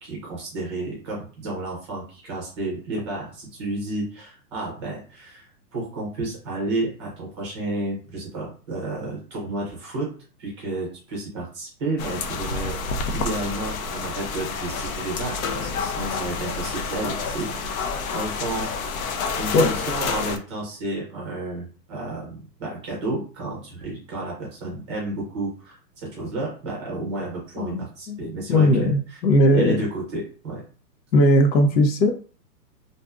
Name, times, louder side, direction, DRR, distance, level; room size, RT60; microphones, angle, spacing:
voice 1, 0.0-10.1 10.4-12.8 13.1-17.8 18.1-18.7 19.3-29.2 29.5-30.6, right 2 dB, 20° right, -3 dB, 0.5 m, -31 dB
sound 1, 12.0-20.4, left 5 dB, 55° left, 0.5 m, -29 dB
voice 2, 27.6-28.2 28.5-29.8 31.1-32.2, left 1 dB, 90° left, 6 dB, 0.8 m, -18 dB
2.6 x 2.5 x 2.3 m, 0.39 s
hypercardioid pair, 150°, 50 cm